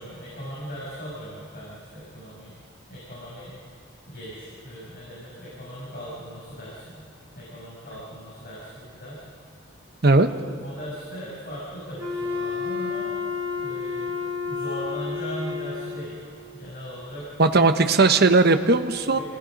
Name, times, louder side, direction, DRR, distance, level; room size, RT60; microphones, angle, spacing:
voice 1, 0.0-2.5 2.9-3.6 4.1-7.0 7.4-9.2 10.2-13.1 13.6-14.2 14.4-16.2 16.5-17.3 19.1-19.2, equal, 50° left, -7 dB, 6.9 m, -38 dB
Wind instrument woodwind instrument, 12.0-16.3, left 5 dB, 15° right, 5.1 m, -30 dB
voice 2, 17.4-19.2, right 3 dB, 55° right, 8 dB, 1.1 m, -18 dB
28.5 x 19.5 x 5.4 m, 2.2 s
head